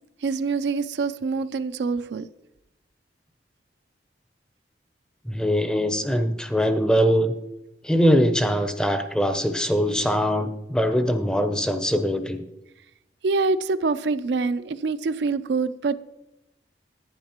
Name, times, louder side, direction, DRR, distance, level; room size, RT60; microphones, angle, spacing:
voice 1, 0.2-2.2 13.2-16.0, right 4 dB, 75° right, 0.4 m, -25 dB
voice 2, 5.3-7.3 7.8-12.4, equal, 5° left, 0.5 m, -22 dB
10.5 x 9.5 x 2.9 m
head